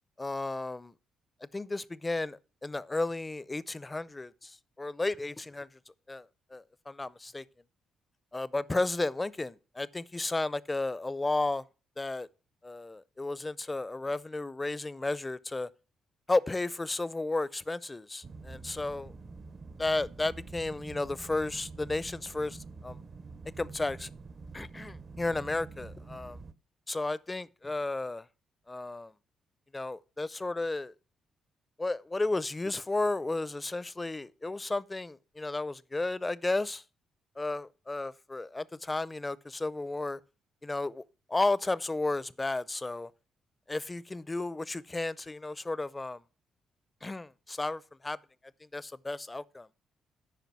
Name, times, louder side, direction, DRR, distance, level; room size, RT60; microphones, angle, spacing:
voice 1, 0.2-0.9 1.5-5.7 6.1-6.2 6.5-7.4 8.3-11.6 12.0-12.3 12.6-15.7 16.3-19.1 19.8-23.0 23.6-24.1 24.5-26.4 26.9-28.2 28.7-29.1 29.7-30.9 31.8-36.8 37.4-40.2 40.6-41.0 41.3-43.1 43.7-46.2 47.0-48.2 48.7-49.7, left 2 dB, 20° left, 0.5 m, -33 dB
sound 1, 18.2-26.5, right 4 dB, 40° right, 0.6 m, -46 dB
9.3 x 5.2 x 6.0 m
cardioid pair, 75°, 0 cm